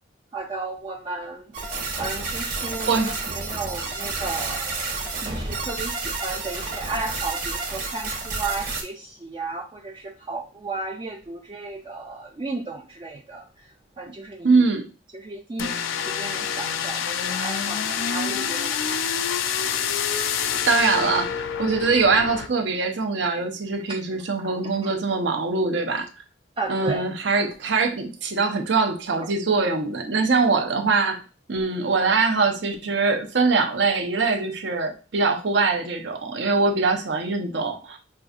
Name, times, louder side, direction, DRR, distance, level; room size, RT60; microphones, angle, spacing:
voice 1, 0.3-13.5 14.0-14.5 15.1-19.0 23.9-24.0 24.4-24.5 24.8-24.9 26.6-27.0, right 3 dB, 25° right, 1 dB, 0.3 m, -34 dB
sound 1, 1.5-8.8, right 3 dB, 45° right, 1.0 m, -30 dB
voice 2, 14.4-14.8 20.7-26.1 26.7-31.2 31.5-38.0, right 4 dB, 70° right, 4 dB, 0.7 m, -23 dB
sound 2, 15.6-22.5, left 7 dB, 90° left, 0.4 m, -27 dB
5.4 x 2.6 x 2.4 m, 0.33 s
head